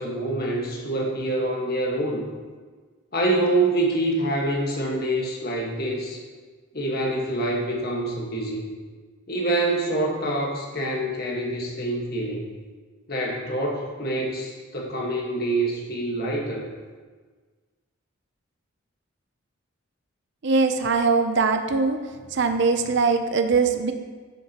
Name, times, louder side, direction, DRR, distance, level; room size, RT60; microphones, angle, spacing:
voice 1, 0.0-2.3 3.1-6.2 6.7-8.7 9.3-12.5 13.1-16.7, right 1 dB, 45° left, -1 dB, 1.5 m, -26 dB
voice 2, 20.4-22.0 22.3-23.9, right 4 dB, 55° right, 7 dB, 0.5 m, -21 dB
12.0 x 6.5 x 2.9 m, 1.4 s
head